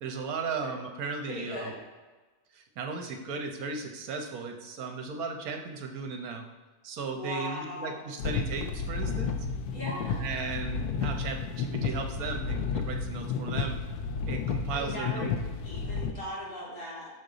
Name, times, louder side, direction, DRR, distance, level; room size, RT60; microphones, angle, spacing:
voice 1, 0.0-1.7 2.5-6.4 6.8-9.3 10.2-13.8 14.3-15.3, right 4 dB, 75° right, 4 dB, 1.2 m, -36 dB
voice 2, 1.3-1.7 7.1-8.0 9.7-10.2 14.7-15.3 15.6-17.1, left 1 dB, 65° left, -8 dB, 2.9 m, -38 dB
sound 1, 8.2-16.1, left 5 dB, 85° left, 1.1 m, -32 dB
6.0 x 5.2 x 3.9 m, 1.3 s
omnidirectional pair, 1.6 m